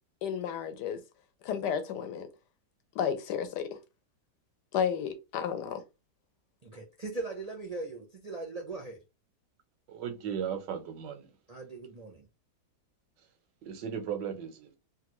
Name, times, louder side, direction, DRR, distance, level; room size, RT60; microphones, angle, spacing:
voice 1, 0.2-1.0 1.4-2.3 2.9-3.8 4.7-5.8, left 8 dB, 80° left, 1.3 m, -32 dB
voice 2, 6.6-9.0 11.5-12.3, right 3 dB, 60° right, 0.4 m, -39 dB
voice 3, 9.9-11.3 13.6-14.8, right 8 dB, 90° right, 1.4 m, -36 dB
3.3 x 2.4 x 2.9 m
omnidirectional pair, 1.8 m